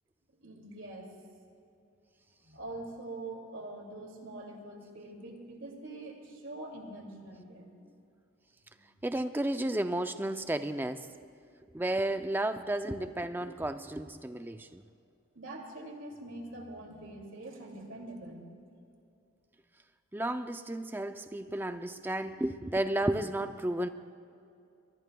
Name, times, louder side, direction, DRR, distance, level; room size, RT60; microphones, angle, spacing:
voice 1, 0.4-1.1 2.5-7.7 8.7-8.9 15.3-18.4, right 2 dB, 70° right, 1 dB, 2.5 m, -44 dB
voice 2, 9.0-11.1 11.7-14.8 20.1-23.9, right 1 dB, 10° right, 9 dB, 0.4 m, -32 dB
23.5 x 22.0 x 2.3 m, 2.6 s
head